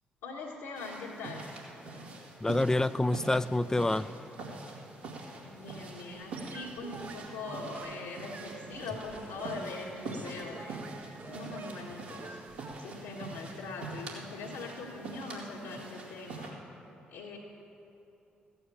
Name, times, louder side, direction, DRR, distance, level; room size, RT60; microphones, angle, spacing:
voice 1, 0.2-1.5 5.4-10.8 11.3-12.4 12.8-16.5 17.1-17.4, left 3 dB, 75° left, -5 dB, 1.6 m, -42 dB
sound 1, 0.7-16.5, right 3 dB, 80° right, 2.4 m, -44 dB
voice 2, 2.4-4.1, left 2 dB, 10° left, 14 dB, 0.4 m, -27 dB
sound 2, 6.1-12.8, right 4 dB, 45° right, 0.9 m, -47 dB
15.0 x 9.7 x 7.5 m, 2.9 s
hypercardioid pair, 40°, 4 cm